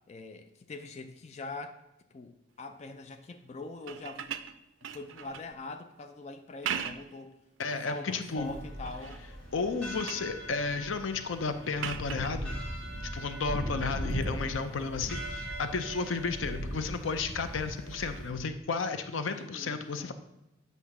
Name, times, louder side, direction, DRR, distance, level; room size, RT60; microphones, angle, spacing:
voice 1, 0.1-1.8 2.1-2.3 2.6-4.3 4.9-7.3 7.8-9.2 19.4-20.1, left 3 dB, 35° left, 7 dB, 0.3 m, -43 dB
sound 1, 3.8-5.5 6.4-7.2 7.7-8.3 8.8-9.3 9.6-10.3 11.8-12.4 14.1-14.2, right 8 dB, 85° right, 0.4 m, -39 dB
voice 2, 7.6-8.5 9.5-12.6 13.1-20.1, left 4 dB, 85° left, 9 dB, 0.6 m, -33 dB
sound 2, 8.4-18.3, equal, 5° left, 2.0 m, -39 dB
8.2 x 2.7 x 5.8 m, 0.91 s
head